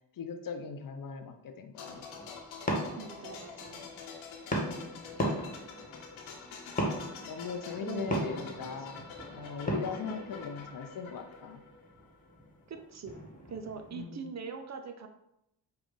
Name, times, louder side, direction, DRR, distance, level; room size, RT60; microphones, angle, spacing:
voice 1, 0.1-2.1 4.6-5.1 7.2-11.6 13.9-14.3, left 6 dB, 45° left, 7 dB, 0.6 m, -40 dB
sound 1, 1.8-12.4 12.6-12.8, left 5 dB, 70° left, 1.0 m, -47 dB
sound 2, 1.9-14.0, equal, 15° left, 1.5 m, -38 dB
voice 2, 3.0-3.9 7.8-8.5 8.8-8.9 10.1-10.2 12.7-13.2 13.5-15.1, right 5 dB, 35° right, 6 dB, 0.5 m, -41 dB
5.0 x 2.3 x 3.8 m, 0.83 s
supercardioid pair, 50°, 49 cm